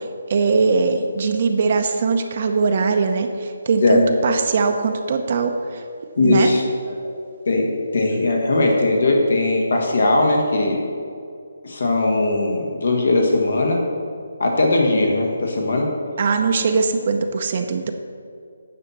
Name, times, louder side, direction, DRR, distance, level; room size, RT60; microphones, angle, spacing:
voice 1, 0.0-5.8 6.2-6.5 16.2-17.9, right 4 dB, 45° right, 6 dB, 0.7 m, -21 dB
voice 2, 6.2-6.9 7.4-10.8 11.6-13.8 14.4-15.9, left 2 dB, 70° left, 0 dB, 1.6 m, -19 dB
9.6 x 4.3 x 7.2 m, 2.3 s
hypercardioid pair, 160°, 0 cm